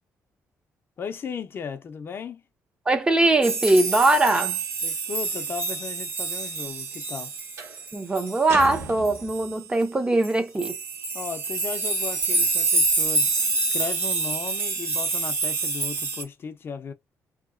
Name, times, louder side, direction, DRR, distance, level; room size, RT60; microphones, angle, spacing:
voice 1, 1.0-2.4 4.8-7.3 11.1-16.9, left 6 dB, 45° left, 0.5 m, -36 dB
voice 2, 2.9-4.6 7.9-10.7, right 2 dB, 15° right, 0.6 m, -21 dB
sound 1, 3.4-9.6 10.2-10.3 10.6-16.2, right 3 dB, 40° right, 1.0 m, -27 dB
sound 2, 3.7-4.2 7.6-7.9 8.5-9.6, right 3 dB, 55° right, 1.3 m, -37 dB
2.9 x 2.8 x 2.4 m
cardioid pair, 145°, 6 cm